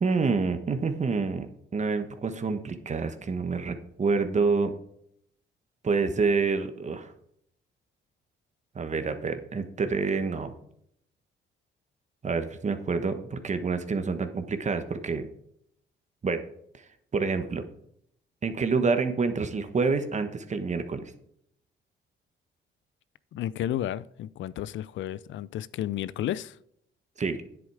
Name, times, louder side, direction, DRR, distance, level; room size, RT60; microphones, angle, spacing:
voice 1, 0.0-4.7 5.8-7.1 8.7-10.5 12.2-15.3 16.2-16.4 17.1-17.6 18.4-21.1 27.2-27.4, right 4 dB, 35° right, 1.2 m, -27 dB
voice 2, 23.3-26.6, left 12 dB, 70° left, 0.5 m, -32 dB
10.0 x 7.9 x 4.8 m
cardioid pair, 90°, 20 cm